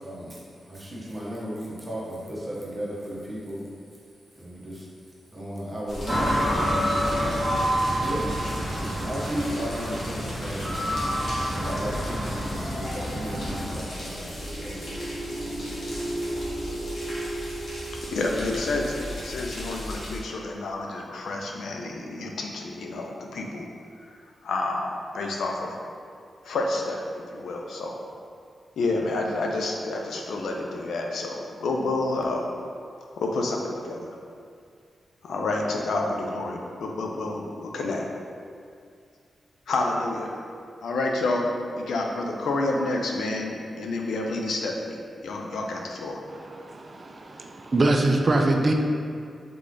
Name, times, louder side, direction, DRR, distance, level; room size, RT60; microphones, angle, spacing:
voice 1, 0.0-3.6 4.3-4.8 5.3-7.0 8.0-8.2 8.7-11.1 11.5-14.8 15.4-15.6, equal, 25° right, -6 dB, 1.1 m, -35 dB
sound 1, 5.9-20.2, equal, 55° left, 1.1 m, -38 dB
sound 2, 6.1-13.8, equal, 5° right, 0.8 m, -28 dB
sound 3, 14.2-19.3, right 1 dB, 85° right, 0.7 m, -35 dB
voice 2, 18.1-23.7 24.4-25.7 26.4-28.0 28.8-32.4 33.1-34.2 35.2-38.0 39.7-40.3 40.8-46.2, left 2 dB, 90° left, 0 dB, 0.5 m, -29 dB
voice 3, 46.3-48.7, right 2 dB, 40° right, 3 dB, 0.4 m, -24 dB
3.8 x 3.3 x 3.7 m, 2.3 s
cardioid pair, 90°, 0 cm